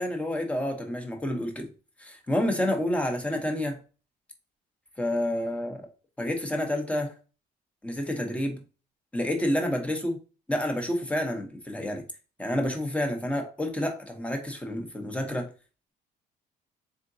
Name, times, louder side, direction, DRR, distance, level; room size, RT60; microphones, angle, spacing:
voice 1, 0.0-1.7 2.0-3.8 5.0-5.8 6.2-7.1 7.8-8.6 9.1-10.2 10.5-12.0 12.4-15.5, left 1 dB, 5° left, 0.8 m, -29 dB
3.8 x 3.6 x 2.6 m
cardioid pair, 110°, 17 cm